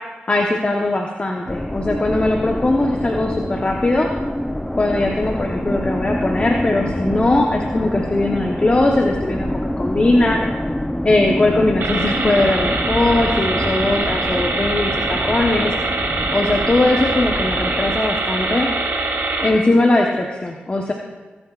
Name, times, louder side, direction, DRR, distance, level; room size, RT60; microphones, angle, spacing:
voice 1, 0.3-4.1 4.7-10.4 11.0-15.7 16.3-18.7 19.4-20.9, left 2 dB, 35° left, 0 dB, 1.1 m, -19 dB
sound 1, 1.5-18.0, left 1 dB, 10° left, 0.6 m, -26 dB
sound 2, 11.8-19.5, right 3 dB, 80° right, 1.9 m, -23 dB
22.5 x 9.9 x 2.5 m, 1.3 s
cardioid pair, 60°, 4 cm